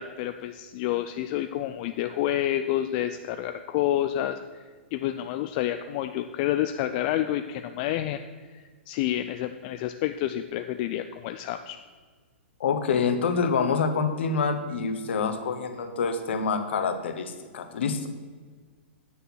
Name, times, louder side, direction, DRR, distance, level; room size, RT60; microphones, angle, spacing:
voice 1, 0.0-4.6 4.9-8.2 8.5-8.6 8.9-11.8, left 12 dB, 45° left, 8 dB, 0.5 m, -29 dB
voice 2, 12.6-18.1, left 5 dB, 65° left, 8 dB, 1.3 m, -26 dB
9.5 x 6.6 x 6.2 m, 1.5 s
hypercardioid pair, 120°, 7 cm